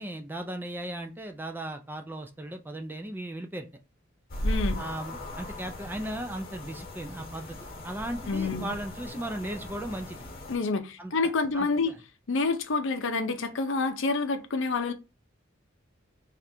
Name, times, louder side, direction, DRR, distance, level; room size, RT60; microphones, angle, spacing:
voice 1, 0.0-3.7 4.8-7.6 7.8-10.3 11.0-12.0, right 1 dB, 10° right, 0.4 m, -37 dB
sound 1, 4.3-10.6, left 1 dB, 45° left, 1.0 m, -37 dB
voice 2, 4.4-4.8 8.3-8.7 10.5-11.9 12.3-14.9, left 3 dB, 65° left, 0.6 m, -28 dB
3.3 x 2.5 x 4.3 m
head